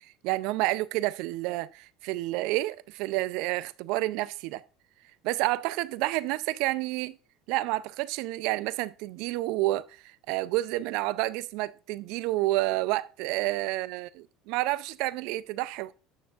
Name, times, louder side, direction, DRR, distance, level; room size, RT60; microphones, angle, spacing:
voice 1, 0.2-4.6 5.2-7.2 7.5-14.1 14.5-15.9, right 18 dB, 70° right, 0.4 m, -29 dB
9.1 x 6.1 x 2.4 m
hypercardioid pair, 75°, 0 cm